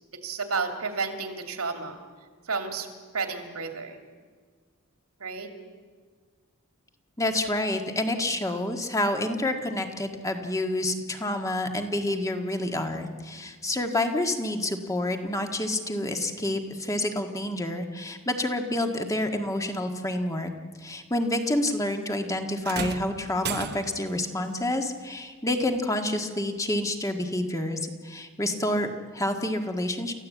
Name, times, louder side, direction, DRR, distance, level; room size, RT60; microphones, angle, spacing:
voice 1, 0.1-2.0 2.4-2.9 3.1-4.0 5.2-5.5, right 4 dB, 80° right, 5 dB, 2.8 m, -31 dB
voice 2, 7.2-20.5 20.8-30.1, left 1 dB, 15° left, 5 dB, 1.7 m, -28 dB
sound 1, 22.6-24.2 25.6-25.8 26.7-26.8, right 5 dB, 50° right, 1.1 m, -34 dB
29.0 x 15.0 x 8.5 m, 1.5 s
head